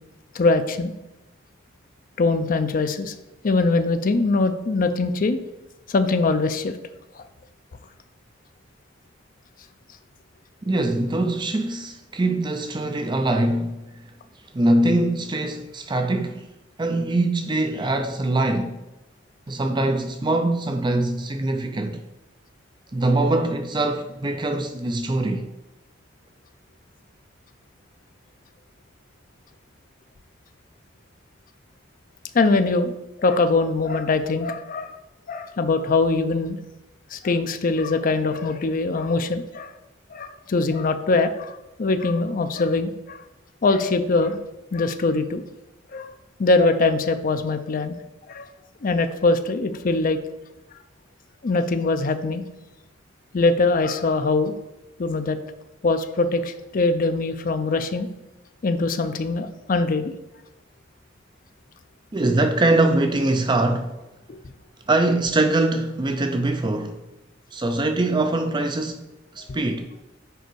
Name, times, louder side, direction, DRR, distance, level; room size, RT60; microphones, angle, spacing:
voice 1, 0.3-0.9 2.2-3.1 3.4-5.4 5.9-6.7 7.2-7.3 32.3-32.9 33.2-35.0 35.3-36.6 37.1-39.7 40.1-43.2 43.6-44.4 44.7-45.4 45.9-46.1 46.4-48.0 48.3-48.5 48.8-50.2 51.4-52.4 53.3-54.5 55.0-55.4 55.8-58.1 58.6-60.1 64.3-64.4 69.5-69.6, left 3 dB, 45° left, 0.5 m, -22 dB
voice 2, 10.6-14.0 14.5-16.4 16.8-18.8 19.5-22.0 22.9-25.5 62.1-64.0 64.9-67.0 67.5-69.1 69.3-69.9, right 2 dB, 25° right, 0.5 m, -23 dB
6.8 x 5.1 x 4.6 m
head